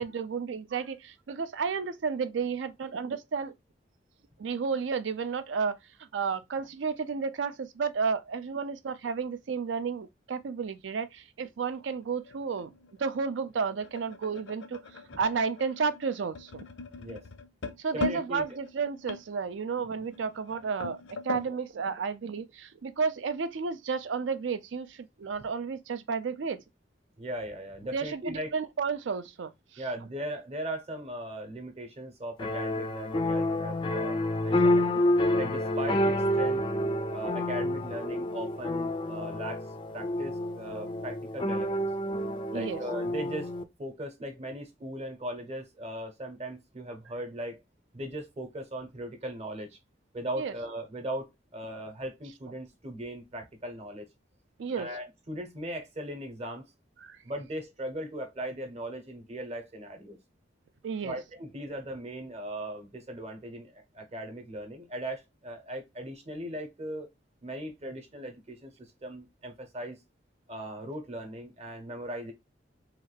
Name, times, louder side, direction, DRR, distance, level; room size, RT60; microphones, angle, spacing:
voice 1, 0.0-3.5 4.4-5.8 6.1-12.7 13.0-14.8 15.2-16.6 17.8-26.6 27.9-29.8 34.9-35.0 42.5-42.8 50.4-50.5 54.6-54.9 57.0-57.2 60.8-61.2, right 5 dB, 75° right, 0.4 m, -32 dB
sound 1, 11.7-21.5, left 4 dB, 80° left, 0.5 m, -41 dB
voice 2, 17.9-18.6 21.5-21.6 27.2-28.5 29.8-34.9 35.4-36.6 37.1-39.6 39.9-41.9 42.5-43.5 43.8-47.6 47.9-49.8 50.1-54.1 54.8-56.7 57.2-60.2 61.0-67.1 67.4-70.0 70.5-72.3, right 1 dB, 35° right, 0.8 m, -38 dB
sound 2, 32.4-43.6, left 1 dB, 25° left, 0.3 m, -29 dB
3.2 x 2.4 x 3.2 m
head